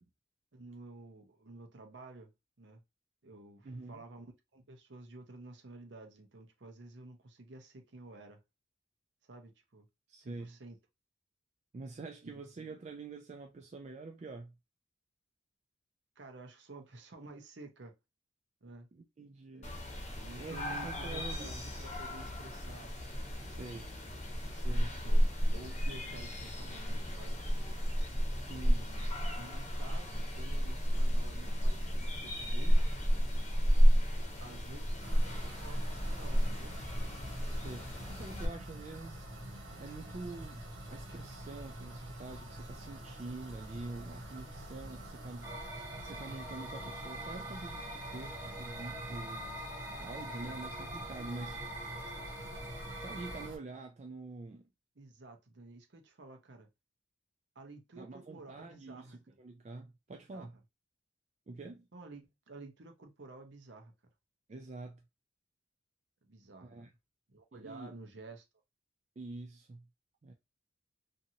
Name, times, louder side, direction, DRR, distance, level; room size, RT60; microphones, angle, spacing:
voice 1, 0.5-2.3 2.6-2.8 3.2-8.4 9.2-9.9 10.2-10.8 12.2-12.4 16.2-18.0 18.6-18.9 19.5-19.7 20.0-22.9 23.5-23.8 24.0-24.1 24.7-27.4 28.6-32.9 34.4-36.8 55.0-56.7 57.5-59.2 60.1-60.5 61.9-63.9 66.2-66.9 67.3-68.4, right 2 dB, 60° right, 0.7 m, -51 dB
voice 2, 3.6-4.1 10.1-10.5 11.7-14.5 18.9-19.7 20.4-21.6 23.5-23.9 24.5-24.9 28.3-28.8 37.5-45.5 46.0-49.5 50.0-51.7 53.0-54.7 58.0-60.5 61.5-61.9 64.5-65.0 66.6-66.9 67.5-67.9 69.2-69.8 70.2-70.3, right 3 dB, 35° right, 0.3 m, -46 dB
sound 1, 19.6-38.5, equal, 35° left, 0.9 m, -31 dB
sound 2, 35.0-53.6, right 1 dB, 80° right, 1.1 m, -46 dB
sound 3, 45.4-53.5, right 1 dB, 10° right, 0.8 m, -44 dB
2.8 x 2.6 x 2.7 m
head